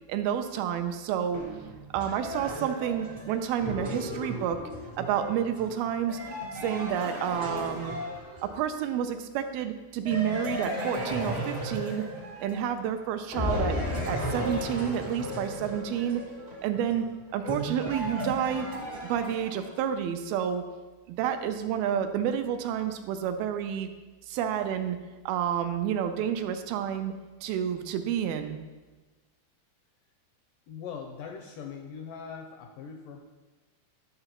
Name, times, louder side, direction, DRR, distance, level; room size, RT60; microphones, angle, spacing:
voice 1, 0.1-1.4 1.9-4.6 5.0-6.2 6.6-7.9 8.4-12.1 12.4-13.7 14.1-16.2 16.6-18.7 19.1-20.7 21.1-23.9 24.3-25.0 25.3-27.1 27.4-28.6, right 9 dB, 80° right, 8 dB, 2.4 m, -29 dB
sound 1, 1.3-8.7 10.1-12.9 13.3-19.8, equal, 40° right, 0.8 m, -35 dB
voice 2, 30.7-33.3, left 6 dB, 80° left, 3 dB, 2.0 m, -41 dB
12.0 x 6.6 x 3.0 m, 1.2 s
omnidirectional pair, 4.4 m